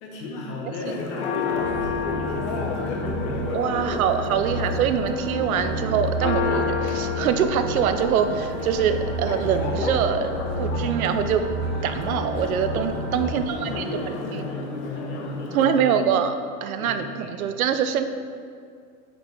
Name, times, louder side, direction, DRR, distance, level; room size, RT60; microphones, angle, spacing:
voice 1, 0.0-3.4 3.7-4.0 4.4-4.8 13.2-16.1 16.8-17.6, left 2 dB, 25° left, -1 dB, 1.0 m, -35 dB
Church bell, 0.8-15.8, left 5 dB, 55° left, 0.9 m, -31 dB
sound 1, 1.5-13.3, right 1 dB, 15° right, 0.4 m, -31 dB
voice 2, 3.5-10.3 10.6-11.5 11.8-13.9 14.3-14.4 15.5-16.4 16.6-18.0, right 8 dB, 75° right, 9 dB, 0.6 m, -24 dB
9.1 x 5.1 x 3.4 m, 2.2 s
supercardioid pair, 170°, 43 cm